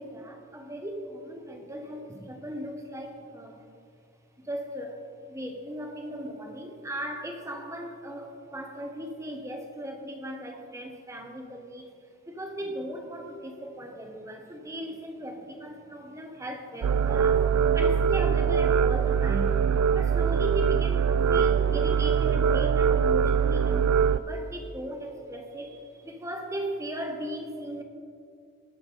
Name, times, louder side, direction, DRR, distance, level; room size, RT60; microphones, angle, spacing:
voice 1, 0.0-3.6 4.4-11.9 12.3-27.8, equal, 15° right, 3 dB, 1.0 m, -37 dB
sound 1, 16.8-24.2, right 7 dB, 80° right, 0.4 m, -23 dB
18.5 x 6.8 x 4.0 m, 2.3 s
head